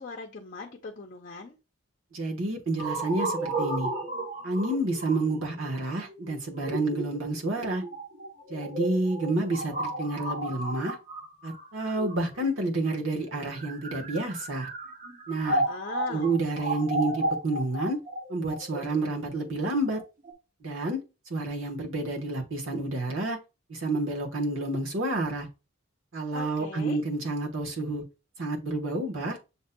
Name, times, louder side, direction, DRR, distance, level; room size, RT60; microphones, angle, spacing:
voice 1, 0.0-1.6 15.5-16.3 26.3-27.0, left 4 dB, 40° left, 0.5 m, -40 dB
voice 2, 2.1-3.9 4.4-7.8 8.5-11.0 11.4-14.7 15.3-15.6 16.1-18.0 18.3-20.0 20.6-21.0 21.3-23.4 23.7-25.5 26.1-28.0 28.4-29.4, right 2 dB, 75° right, 1.2 m, -29 dB
sound 1, 2.8-12.6 13.4-20.3, right 2 dB, 40° right, 0.8 m, -33 dB
7.1 x 2.7 x 2.2 m
head